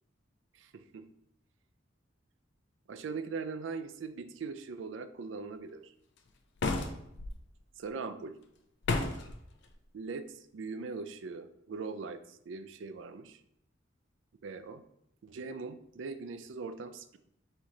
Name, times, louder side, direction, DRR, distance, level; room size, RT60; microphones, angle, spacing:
voice 1, 0.5-1.0 2.9-5.9 7.8-8.3 9.9-13.4 14.4-14.8 15.2-17.2, right 4 dB, 70° right, 10 dB, 0.4 m, -41 dB
sound 1, 6.6-7.3 8.8-9.4, left 3 dB, 60° left, 0.5 m, -31 dB
4.1 x 3.0 x 3.8 m, 0.75 s
head